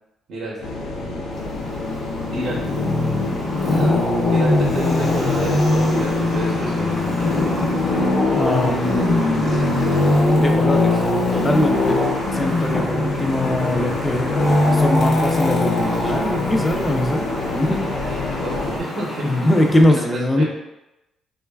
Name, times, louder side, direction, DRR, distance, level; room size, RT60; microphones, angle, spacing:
sound 1, 0.6-18.8, left 2 dB, 90° left, 0.5 m, -30 dB
Traffic noise roadway noise, 1.3-19.8, left 2 dB, 60° left, 0.8 m, -21 dB
voice 1, 4.3-7.3 18.4-20.4, right 1 dB, 70° right, -5 dB, 0.6 m, -30 dB
voice 2, 8.3-9.6 10.4-11.0 11.3-12.0 12.3-17.2 17.5-17.9 19.2-20.4, left 1 dB, 20° left, 2 dB, 0.4 m, -21 dB
3.0 x 2.2 x 2.2 m, 0.94 s
cardioid pair, 90°, 0 cm